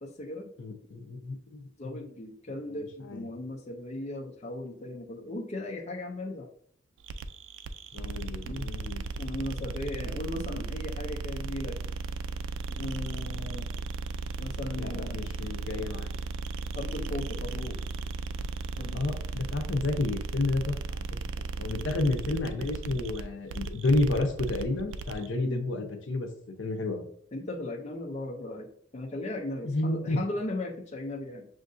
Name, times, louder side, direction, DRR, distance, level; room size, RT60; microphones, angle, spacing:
voice 1, 0.0-0.5 1.8-6.5 8.4-8.7 9.2-11.8 12.7-13.7 14.4-15.2 16.7-17.8 18.8-19.0 21.7-21.9 22.3-22.4 25.4-25.6 27.3-31.5, left 1 dB, 35° left, 1 dB, 0.5 m, -37 dB
voice 2, 0.6-2.0 3.1-3.3 7.9-9.0 9.6-9.7 14.8-16.2 18.9-21.0 21.6-26.3 26.6-27.0 29.6-30.2, left 2 dB, 75° left, 5 dB, 0.7 m, -31 dB
sound 1, 7.0-25.3, right 3 dB, 75° right, 0.3 m, -35 dB
6.3 x 2.5 x 2.5 m, 0.63 s
head